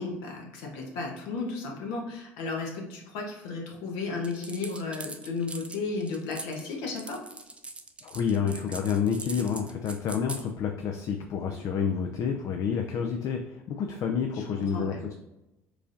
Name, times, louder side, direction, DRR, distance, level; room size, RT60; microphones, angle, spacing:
voice 1, 0.0-7.2 14.3-15.0, left 3 dB, 75° left, 0 dB, 0.9 m, -34 dB
sound 1, 4.2-10.4, right 3 dB, 15° right, 0.5 m, -41 dB
voice 2, 8.0-15.1, left 7 dB, 50° left, 4 dB, 0.4 m, -29 dB
4.6 x 2.7 x 2.6 m, 0.95 s
hypercardioid pair, 70°, 7 cm